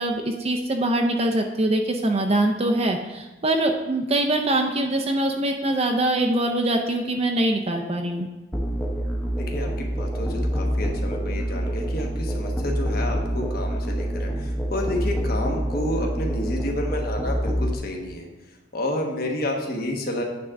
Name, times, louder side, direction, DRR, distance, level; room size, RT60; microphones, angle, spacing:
voice 1, 0.0-8.3, right 1 dB, 30° right, 3 dB, 0.5 m, -23 dB
Musical instrument, 8.5-17.8, equal, 10° left, 0.8 m, -26 dB
voice 2, 9.4-18.3 18.7-20.2, left 1 dB, 50° left, 1 dB, 1.2 m, -30 dB
9.5 x 3.7 x 5.8 m, 1.1 s
head